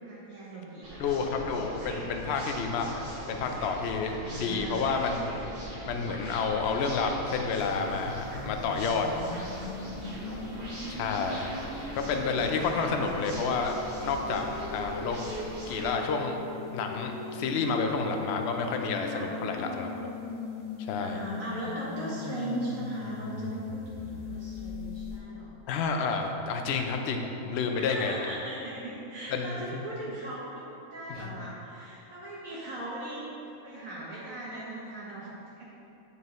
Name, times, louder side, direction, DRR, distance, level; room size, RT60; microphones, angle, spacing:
voice 1, 0.0-1.2 4.0-4.9 10.0-10.5 12.9-13.2 19.1-19.3 21.0-25.5 27.7-33.3 33.6-35.3 35.6-35.7, right 2 dB, 65° right, -7 dB, 1.4 m, -39 dB
sound 1, 0.8-15.9, right 1 dB, 35° right, 1.3 m, -41 dB
voice 2, 1.0-5.4 5.9-9.1 10.9-11.5 12.0-15.2 15.7-16.4 16.7-19.9 20.8-21.2 25.7-28.1 29.3-29.8 31.2-31.4, left 4 dB, 60° left, 4 dB, 0.7 m, -30 dB
sound 2, 7.6-25.2, left 4 dB, 30° left, 1.1 m, -39 dB
9.7 x 4.6 x 3.1 m, 3.0 s
omnidirectional pair, 1.5 m